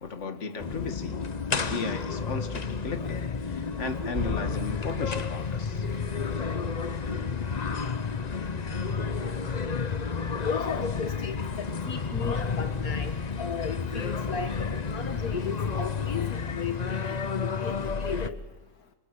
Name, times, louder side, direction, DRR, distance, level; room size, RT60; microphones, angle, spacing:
voice 1, 0.0-1.2 1.5-5.9, left 3 dB, 50° left, 8 dB, 2.2 m, -35 dB
sound 1, 0.6-18.3, left 5 dB, 35° left, 0.8 m, -31 dB
voice 2, 10.4-13.1 13.4-18.4, left 6 dB, 70° left, 7 dB, 1.8 m, -36 dB
26.5 x 26.0 x 8.1 m, 1.1 s
omnidirectional pair, 1.6 m